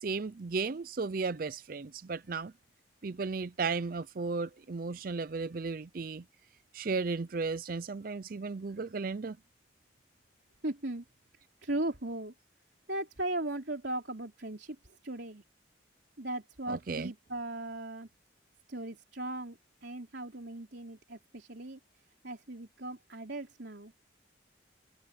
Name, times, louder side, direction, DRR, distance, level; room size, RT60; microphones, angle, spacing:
voice 1, 0.0-2.5 3.0-6.2 6.7-9.4 16.7-17.1, right 4 dB, 50° right, 0.5 m, -35 dB
voice 2, 10.6-11.0 11.6-12.3 12.9-14.8 15.0-15.4 16.2-18.1 18.7-21.8 22.2-23.9, right 1 dB, 65° right, 3.5 m, -37 dB
head